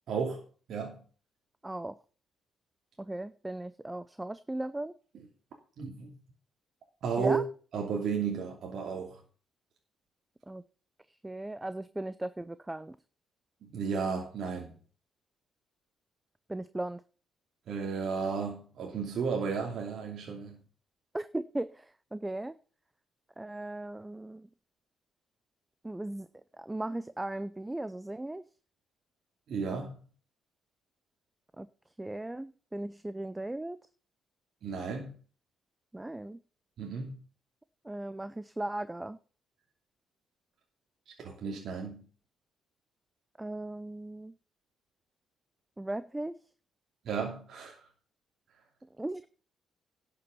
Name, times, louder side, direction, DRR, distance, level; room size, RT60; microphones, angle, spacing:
voice 1, 0.1-0.4 0.7-1.0 5.8-6.2 7.0-7.4 7.7-9.2 13.6-14.8 17.7-20.6 29.5-29.9 34.6-35.1 36.8-37.2 41.1-42.1 47.0-47.9, right 5 dB, 65° right, 2.8 m, -33 dB
voice 2, 1.6-2.0 3.0-4.9 7.2-7.4 10.5-10.6 11.2-13.0 16.5-17.0 21.1-22.5 23.4-24.5 25.8-26.3 26.5-28.4 31.6-31.7 32.0-33.8 35.9-36.4 37.8-39.2 43.4-44.3 45.8-46.4 49.0-49.3, right 1 dB, 10° right, 0.6 m, -37 dB
11.5 x 6.9 x 7.0 m
cardioid pair, 90°, 0 cm